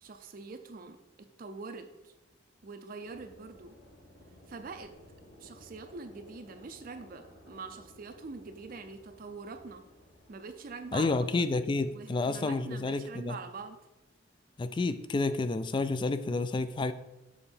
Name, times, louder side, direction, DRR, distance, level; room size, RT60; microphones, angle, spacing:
voice 1, 0.0-1.0 1.4-2.1 2.6-3.7 4.5-4.9 5.4-9.8 10.3-11.5 11.9-13.8, right 4 dB, 50° right, 6 dB, 0.5 m, -44 dB
sound 1, 3.0-10.9, left 1 dB, 75° left, 1.6 m, -56 dB
voice 2, 10.9-13.4 14.6-16.9, left 3 dB, 25° left, 12 dB, 0.3 m, -30 dB
7.2 x 3.8 x 4.4 m, 0.96 s
head